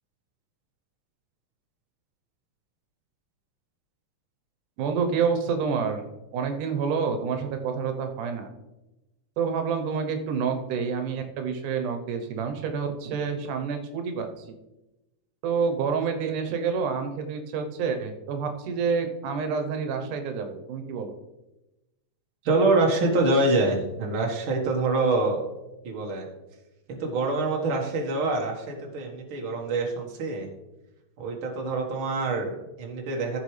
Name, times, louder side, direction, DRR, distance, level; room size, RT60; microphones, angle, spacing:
voice 1, 4.8-6.0 6.3-8.5 9.4-14.5 15.4-21.1, right 6 dB, 90° right, 5 dB, 2.5 m, -28 dB
voice 2, 22.4-25.4 25.8-26.3 26.9-30.5 31.2-33.4, right 2 dB, 50° right, 0 dB, 2.1 m, -25 dB
14.5 x 6.1 x 3.3 m, 1.0 s
omnidirectional pair, 3.5 m